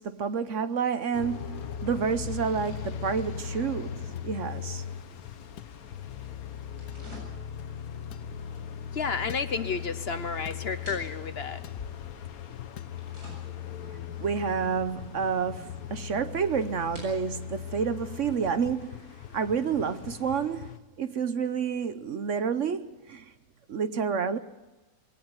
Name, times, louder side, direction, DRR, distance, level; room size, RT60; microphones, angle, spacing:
voice 1, 0.0-4.8 14.2-19.1 19.3-20.7 21.0-23.3 23.7-24.4, right 6 dB, 55° right, 1.1 m, -29 dB
sound 1, 1.1-20.8, left 8 dB, 70° left, 1.4 m, -39 dB
sound 2, 4.2-4.3 5.6-5.8 6.9-7.1 8.1-8.3 9.3-9.5 10.4-10.7 11.6-11.9 12.8-13.0, left 9 dB, 85° left, 1.4 m, -46 dB
sound 3, 4.5-20.3, left 1 dB, 85° right, 8.2 m, -53 dB
voice 2, 8.9-11.6, left 5 dB, 45° left, 1.0 m, -31 dB
21.5 x 17.5 x 8.0 m
omnidirectional pair, 1.7 m